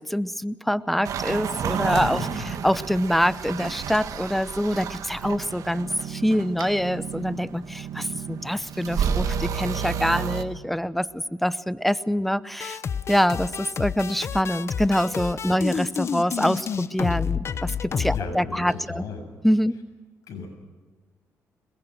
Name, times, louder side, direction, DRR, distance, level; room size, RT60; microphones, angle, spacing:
voice 1, 0.0-2.3 2.6-12.8 13.1-19.0 19.4-19.8, equal, ahead, 16 dB, 0.8 m, -25 dB
sound 1, 1.0-10.4, right 7 dB, 70° right, 1.5 m, -31 dB
voice 2, 1.8-2.5 15.5-15.7 18.1-19.2 20.3-20.5, left 4 dB, 75° left, 4 dB, 7.4 m, -36 dB
sound 2, 5.2-10.5, right 9 dB, 90° right, 1.7 m, -38 dB
sound 3, 12.6-18.2, left 7 dB, 50° left, 0.9 m, -29 dB
23.0 x 21.0 x 6.4 m, 1.4 s
cardioid pair, 85°, 6 cm